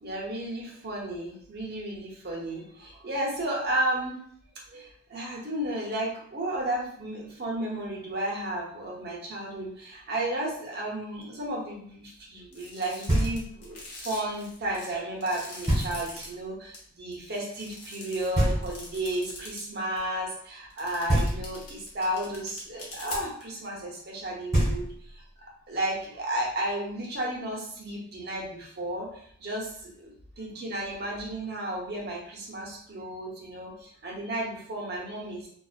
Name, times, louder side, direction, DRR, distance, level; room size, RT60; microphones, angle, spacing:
voice 1, 0.0-4.2 4.7-25.2 25.7-30.1 30.4-35.5, right 1 dB, 45° right, -2 dB, 0.6 m, -33 dB
sound 1, 12.5-16.2 16.7-16.8 17.1-19.6 20.0-20.1 20.7-23.4, left 3 dB, 85° left, 0.9 m, -43 dB
Knock, 13.1-13.7 15.7-16.3 18.3-19.2 21.1-21.9 24.2-24.3 24.5-25.3, right 1 dB, 15° right, 1.4 m, -27 dB
2.4 x 2.3 x 2.4 m, 0.63 s
head